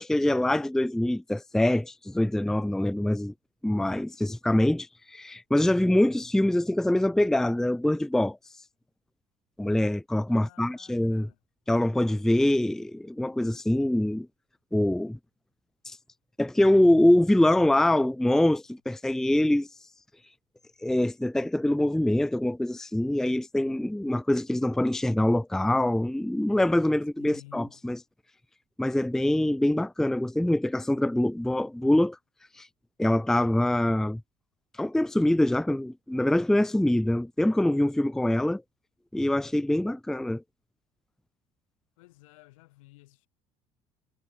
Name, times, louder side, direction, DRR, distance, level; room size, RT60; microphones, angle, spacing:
voice 1, 0.0-3.3 3.6-8.4 9.6-11.3 11.7-14.3 14.7-15.2 15.9-16.0 16.4-19.7 20.8-28.0 28.8-32.2 32.6-32.7 33.0-34.2 34.8-38.6 39.1-40.4, left 1 dB, 5° left, 0.5 m, -24 dB
voice 2, 10.3-11.4 27.2-27.8 42.0-43.3, left 20 dB, 80° left, 2.8 m, -54 dB
hypercardioid pair, 65°, 17 cm